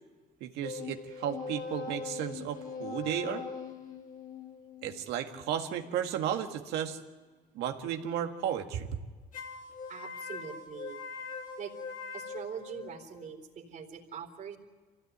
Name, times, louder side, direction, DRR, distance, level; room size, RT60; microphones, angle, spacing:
voice 1, 0.4-3.4 4.8-7.0 7.6-8.9, right 9 dB, 90° right, 5 dB, 1.8 m, -34 dB
sound 1, 0.6-6.0 9.3-13.3, left 5 dB, 50° left, 2.4 m, -42 dB
voice 2, 9.9-11.0 11.6-11.8 12.1-14.6, right 7 dB, 50° right, 3 dB, 3.8 m, -43 dB
25.5 x 16.5 x 9.4 m, 1.4 s
cardioid pair, 110°, 17 cm